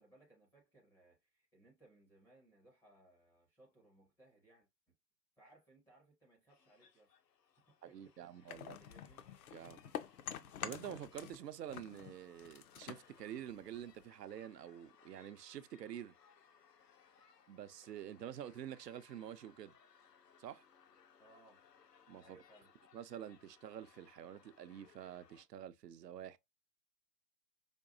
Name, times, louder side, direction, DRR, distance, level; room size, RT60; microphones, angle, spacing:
voice 1, 0.0-4.9 5.4-7.1 7.7-9.2 21.2-21.6 22.2-22.7, right 2 dB, 5° left, 0.5 m, -66 dB
sound 1, 6.5-25.4, left 7 dB, 80° left, 1.0 m, -66 dB
voice 2, 7.8-8.8 9.5-9.8 10.6-16.1 17.5-19.7 20.4-20.6 22.1-22.4 22.9-26.4, right 10 dB, 80° right, 0.6 m, -48 dB
sound 2, 8.5-11.4 11.7-14.1, left 9 dB, 60° left, 0.7 m, -47 dB
5.2 x 2.3 x 2.5 m
figure-of-eight pair, 120°, 49 cm